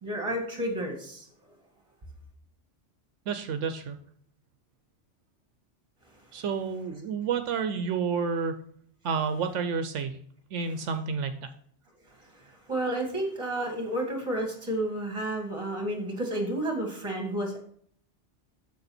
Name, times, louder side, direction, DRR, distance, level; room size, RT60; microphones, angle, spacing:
voice 1, 0.0-1.3 12.1-17.6, right 1 dB, 25° right, 3 dB, 2.0 m, -31 dB
voice 2, 3.3-4.0 6.3-8.6 9.0-10.1 10.5-11.3, right 5 dB, 80° right, 8 dB, 1.0 m, -30 dB
6.9 x 6.7 x 4.3 m, 0.62 s
omnidirectional pair, 1.3 m